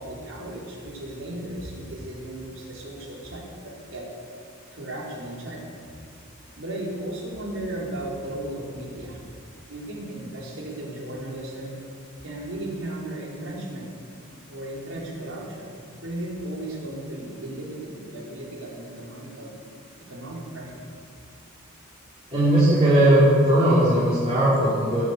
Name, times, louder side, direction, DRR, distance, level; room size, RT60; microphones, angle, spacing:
voice 1, 0.0-4.1 4.7-5.6 6.6-9.2 9.7-11.8 12.2-13.9 14.5-19.5 20.1-20.8, right 1 dB, 65° right, -3 dB, 4.2 m, -35 dB
voice 2, 22.3-25.0, right 1 dB, 30° right, -10 dB, 4.1 m, -18 dB
20.5 x 7.8 x 8.4 m, 2.4 s
head